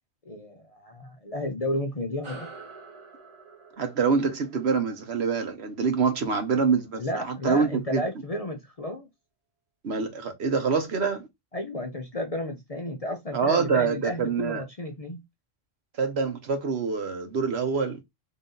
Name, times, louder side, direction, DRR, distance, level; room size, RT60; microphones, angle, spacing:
voice 1, 0.3-2.5 7.0-9.1 11.5-15.2, left 1 dB, 40° left, 0.6 m, -32 dB
sound 1, 2.2-7.1, right 2 dB, 30° right, 0.8 m, -48 dB
voice 2, 3.8-8.0 9.8-11.3 13.3-14.6 16.0-18.0, right 5 dB, 60° right, 1.2 m, -26 dB
3.8 x 2.6 x 3.8 m
omnidirectional pair, 1.3 m